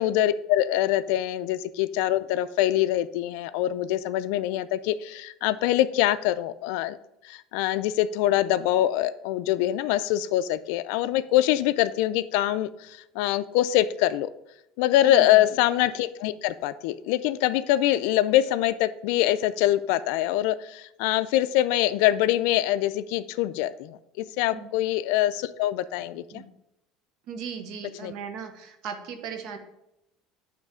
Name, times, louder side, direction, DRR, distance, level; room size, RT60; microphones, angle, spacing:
voice 1, 0.0-7.0 7.2-14.3 14.8-26.4 28.0-28.1, left 13 dB, 75° left, 14 dB, 0.3 m, -24 dB
voice 2, 15.0-15.4 24.5-24.7 26.3-26.5 27.3-29.6, right 6 dB, 60° right, 7 dB, 0.9 m, -37 dB
8.9 x 3.2 x 4.9 m, 0.85 s
cardioid pair, 145°, 0 cm